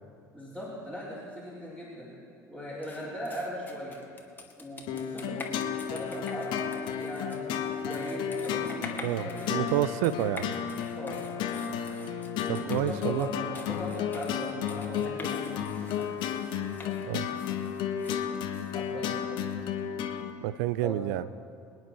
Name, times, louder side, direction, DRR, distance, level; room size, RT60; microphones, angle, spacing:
voice 1, 0.3-2.1 2.5-4.0 4.6-5.5 5.8-9.5 10.9-11.2 12.5-16.2 16.8-17.4 18.7-19.3 20.8-21.1, equal, 10° right, -9 dB, 4.1 m, -39 dB
sound 1, 2.8-19.2, left 3 dB, 20° left, 2.1 m, -47 dB
sound 2, 4.9-20.3, left 8 dB, 50° left, 1.1 m, -33 dB
voice 2, 9.0-10.5 12.5-13.3 17.1-17.3 20.4-21.2, right 14 dB, 60° right, 16 dB, 0.5 m, -29 dB
25.0 x 9.7 x 4.3 m, 2.5 s
figure-of-eight pair, 65°, 10 cm